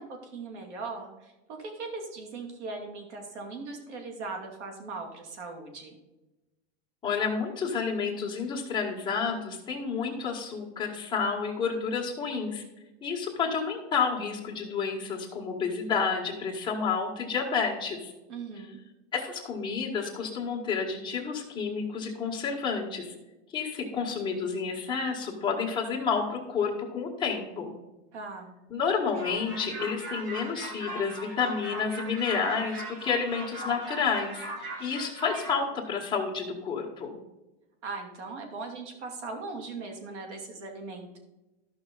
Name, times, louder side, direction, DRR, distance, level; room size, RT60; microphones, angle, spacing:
voice 1, 0.0-6.0 18.3-18.8 28.1-28.5 37.8-41.2, right 3 dB, 85° right, 3 dB, 2.7 m, -39 dB
voice 2, 7.0-12.6 13.0-18.1 19.1-23.1 23.5-27.8 28.7-37.2, left 5 dB, 15° left, -2 dB, 1.7 m, -30 dB
sound 1, 29.1-35.6, right 1 dB, 55° right, 3.0 m, -39 dB
13.5 x 5.8 x 4.0 m, 1.0 s
supercardioid pair, 170°, 34 cm